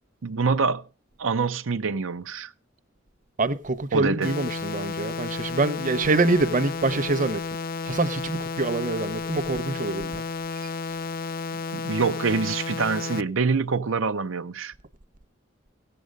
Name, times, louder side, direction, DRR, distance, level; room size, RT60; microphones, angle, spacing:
voice 1, 0.2-0.9 1.2-2.5 3.9-4.3 11.7-14.7, right 5 dB, 90° right, 0.7 m, -25 dB
voice 2, 3.4-7.4 7.8-10.2 10.6-10.7, right 3 dB, 40° right, 0.9 m, -25 dB
sound 1, 4.2-13.2, left 4 dB, 45° left, 0.5 m, -32 dB
16.5 x 7.8 x 5.2 m
head